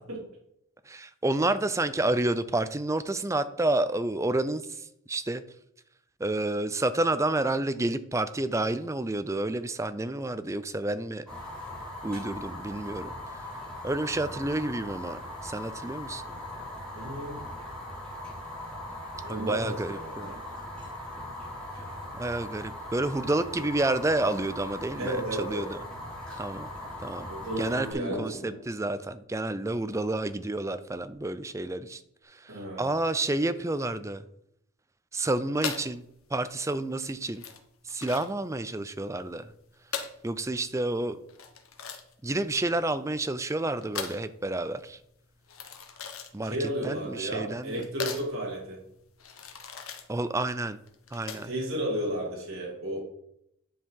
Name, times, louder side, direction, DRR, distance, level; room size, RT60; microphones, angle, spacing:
voice 1, 0.9-5.4 6.2-11.2 12.0-13.4 13.8-16.2 19.3-20.3 22.1-25.8 26.4-26.7 27.0-27.3 27.6-34.2 35.1-36.0 36.3-37.4 37.8-39.5 40.2-41.2 42.2-45.0 46.3-47.9 50.1-50.8 51.1-51.5, right 2 dB, 15° right, 12 dB, 0.4 m, -30 dB
Fire, 11.3-27.9, left 1 dB, 5° left, 3.4 m, -40 dB
voice 2, 17.0-17.4 19.2-20.4 21.7-22.0 25.0-25.7 27.3-28.6 32.5-32.9 46.4-48.8 51.3-53.0, right 1 dB, 75° right, -2 dB, 2.4 m, -33 dB
sound 1, 28.1-31.3, equal, 35° left, 2.4 m, -47 dB
sound 2, 35.6-51.7, left 7 dB, 85° left, 1.1 m, -40 dB
10.0 x 5.5 x 4.6 m, 0.75 s
head